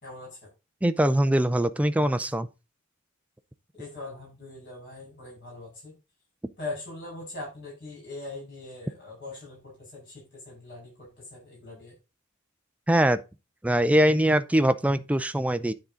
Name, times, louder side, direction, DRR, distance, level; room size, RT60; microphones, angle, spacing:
voice 1, 0.0-0.5 3.7-6.0 6.6-11.9, left 2 dB, 50° left, 5.3 m, -41 dB
voice 2, 0.8-2.5 12.9-13.2 13.6-15.7, right 1 dB, 5° right, 0.5 m, -22 dB
9.8 x 3.9 x 4.9 m
head